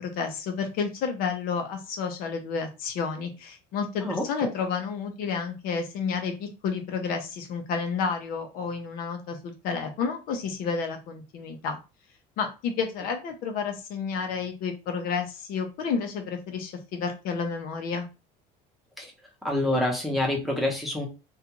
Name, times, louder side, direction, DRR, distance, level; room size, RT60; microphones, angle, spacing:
voice 1, 0.0-11.8 12.4-18.1, left 5 dB, 60° left, 5 dB, 0.6 m, -31 dB
voice 2, 19.4-21.1, left 1 dB, ahead, -2 dB, 0.8 m, -26 dB
2.5 x 2.3 x 2.9 m, 0.29 s
cardioid pair, 135°, 17 cm